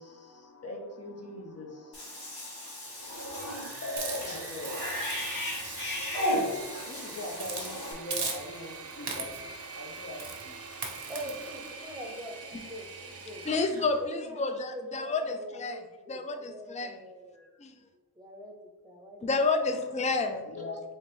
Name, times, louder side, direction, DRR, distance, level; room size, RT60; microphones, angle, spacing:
voice 1, 0.0-2.7 3.2-6.2 6.9-9.3 9.7-10.6 11.0-11.4 17.3-17.6 20.4-20.8, left 2 dB, 40° left, 0.7 m, -42 dB
Cat / Bathtub (filling or washing), 1.9-7.9, left 1 dB, 75° left, 1.4 m, -35 dB
Engine / Mechanisms, 2.9-14.1, right 4 dB, 40° right, 0.5 m, -44 dB
Hiss, 4.0-6.8 7.4-7.7 8.1-8.7 9.1-9.5 10.2-10.4 10.8-11.3, right 4 dB, 80° right, 0.8 m, -38 dB
voice 2, 11.1-13.5 14.0-17.5 18.2-18.6 18.8-19.4, equal, 10° right, 0.8 m, -43 dB
voice 3, 13.5-15.8 16.1-17.0 17.6-17.7 19.2-20.5, left 3 dB, 20° left, 0.3 m, -30 dB
4.0 x 2.6 x 3.4 m
wide cardioid pair, 50°, 39 cm